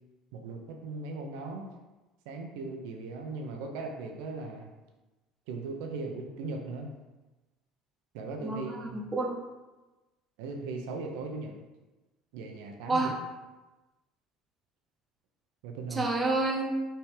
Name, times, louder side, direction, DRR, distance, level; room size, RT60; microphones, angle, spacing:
voice 1, 0.3-1.7 2.3-4.7 5.5-6.9 8.1-9.0 10.4-11.6 12.3-13.1 15.6-16.1, right 3 dB, 80° right, 3 dB, 0.8 m, -38 dB
voice 2, 8.4-9.4 12.9-13.1 15.9-16.8, right 2 dB, 10° right, 0 dB, 0.6 m, -29 dB
5.8 x 3.6 x 5.0 m, 1.1 s
cardioid pair, 175°, 0 cm